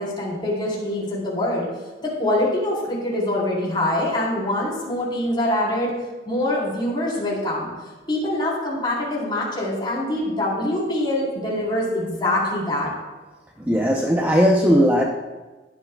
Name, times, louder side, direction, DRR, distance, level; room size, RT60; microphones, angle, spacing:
voice 1, 0.0-1.7 2.0-5.9 6.3-7.7 8.1-12.9, left 1 dB, 25° left, -5 dB, 4.1 m, -24 dB
voice 2, 13.7-15.0, equal, 10° right, -1 dB, 0.8 m, -17 dB
16.5 x 11.5 x 2.4 m, 1.2 s
head